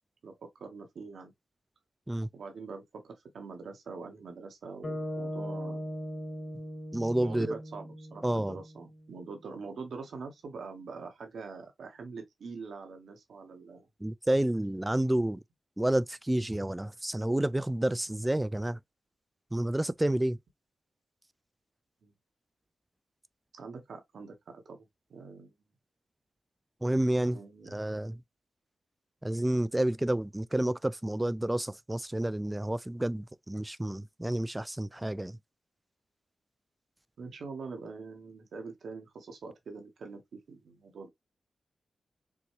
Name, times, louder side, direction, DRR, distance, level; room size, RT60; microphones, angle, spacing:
voice 1, 0.2-1.3 2.3-5.9 7.2-13.9 22.0-22.1 23.5-25.5 27.3-27.8 37.2-41.1, right 4 dB, 80° right, 1.4 m, -44 dB
sound 1, 4.8-9.1, equal, 30° left, 1.7 m, -39 dB
voice 2, 6.9-7.5 8.2-8.6 14.0-15.4 15.8-18.8 19.5-20.4 26.8-27.4 27.7-28.2 29.2-35.4, right 1 dB, 15° right, 0.3 m, -29 dB
6.0 x 2.3 x 3.1 m
cardioid pair, 60°, 0 cm